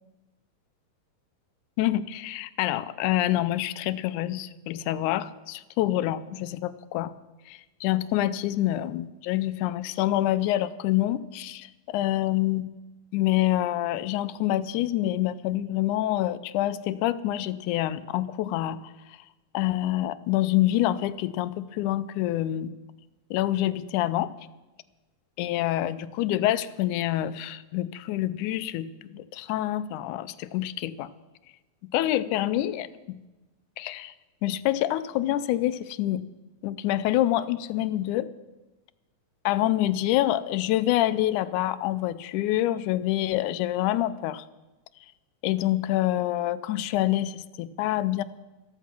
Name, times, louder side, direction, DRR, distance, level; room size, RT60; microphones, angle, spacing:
voice 1, 1.8-7.1 7.5-11.7 11.9-12.7 13.1-18.8 19.5-22.7 23.3-24.3 25.4-31.1 31.9-32.9 33.8-34.1 34.4-36.2 36.6-38.3 39.5-44.4 45.4-48.2, left 14 dB, 90° left, 14 dB, 2.1 m, -26 dB
14.0 x 13.0 x 6.1 m, 1.1 s
omnidirectional pair, 3.4 m